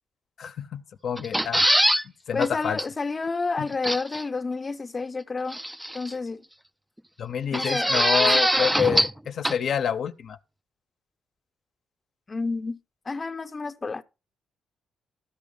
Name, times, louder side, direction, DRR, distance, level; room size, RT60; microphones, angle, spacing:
voice 1, 0.4-1.6 2.3-2.8 3.6-3.7 7.2-10.4, left 7 dB, 60° left, 0.7 m, -27 dB
sound 1, 1.2-2.0 2.4-2.5 2.8-2.9 3.8-4.2 5.5-6.1 7.5-9.2 9.4-9.5, equal, 5° right, 0.4 m, -22 dB
voice 2, 2.3-5.6 5.9-6.4 7.5-8.0 12.3-12.8 13.1-14.0, left 4 dB, 30° left, 0.8 m, -30 dB
13.5 x 5.2 x 5.4 m
cardioid pair, 90°, 0 cm